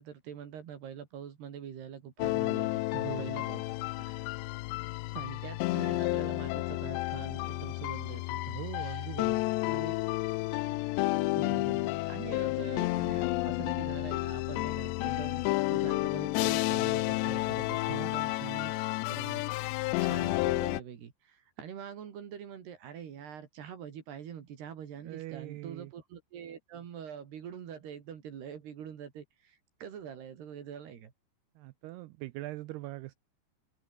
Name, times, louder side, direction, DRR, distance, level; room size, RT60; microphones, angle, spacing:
voice 1, 0.0-2.8 3.2-4.4 5.1-8.4 8.8-9.1 9.6-9.9 11.3-18.7 19.1-19.4 19.7-31.1, right 8 dB, 60° right, 4.4 m, -44 dB
sound 1, 2.2-20.8, left 21 dB, 80° left, 2.7 m, -31 dB
voice 2, 2.9-3.3 8.5-9.4 17.8-18.1 25.0-25.9 31.6-33.1, right 18 dB, 80° right, 2.4 m, -41 dB
open air
omnidirectional pair, 5.4 m